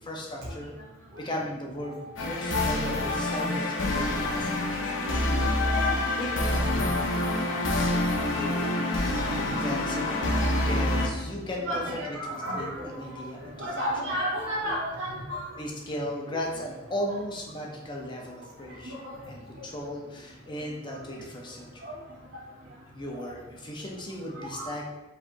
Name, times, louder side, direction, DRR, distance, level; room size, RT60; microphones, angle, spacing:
voice 1, 0.0-0.7 1.2-4.9 6.2-7.9 8.3-8.7 9.3-10.4 10.6-11.8 12.1-14.2 15.6-18.9 19.3-21.8 22.9-24.8, left 1 dB, 25° left, -2 dB, 0.7 m, -37 dB
voice 2, 1.8-2.1 5.3-5.9 7.9-8.1 9.0-10.5 11.6-13.2 13.6-15.4 18.9-19.2 21.8-21.9 24.4-24.7, equal, 80° right, -5 dB, 0.7 m, -34 dB
sound 1, 2.2-11.1, left 1 dB, 85° left, 0.8 m, -27 dB
5.0 x 3.3 x 2.7 m, 1.0 s
head